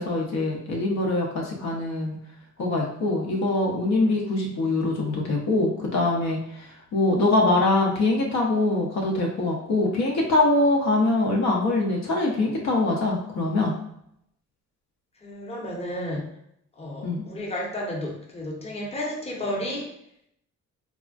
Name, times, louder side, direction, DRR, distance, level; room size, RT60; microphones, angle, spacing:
voice 1, 0.0-2.2 2.6-13.7 17.0-17.2, left 2 dB, 65° left, -1 dB, 0.7 m, -23 dB
voice 2, 15.2-16.3 16.8-19.9, left 1 dB, 20° left, -2 dB, 0.7 m, -32 dB
3.4 x 2.1 x 2.4 m, 0.74 s
cardioid pair, 90°, 30 cm